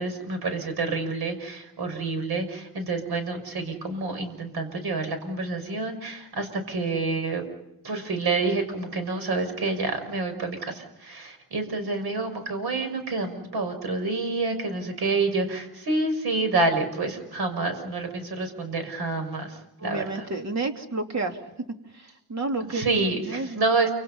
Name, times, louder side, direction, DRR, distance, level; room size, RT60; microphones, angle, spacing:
voice 1, 0.0-7.5 7.8-20.2 22.7-23.9, right 3 dB, 75° right, 7 dB, 6.4 m, -28 dB
voice 2, 19.8-21.4 21.9-23.0 23.3-23.9, right 2 dB, 45° right, 4 dB, 3.2 m, -31 dB
29.0 x 27.0 x 5.7 m, 0.87 s
cardioid pair, 115°, 39 cm